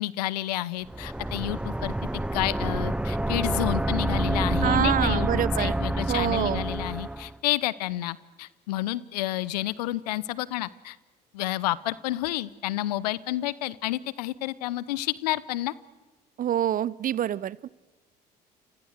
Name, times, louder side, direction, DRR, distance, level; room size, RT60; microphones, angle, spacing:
voice 1, 0.0-1.9 2.3-11.0 11.3-15.7, left 16 dB, 75° left, 21 dB, 0.9 m, -30 dB
sound 1, 0.8-7.3, right 1 dB, 5° right, 0.9 m, -28 dB
voice 2, 4.6-5.8 6.1-6.6 16.4-17.7, right 11 dB, 45° right, 23 dB, 0.8 m, -26 dB
29.5 x 26.5 x 6.6 m, 1.2 s
hypercardioid pair, 60°, 21 cm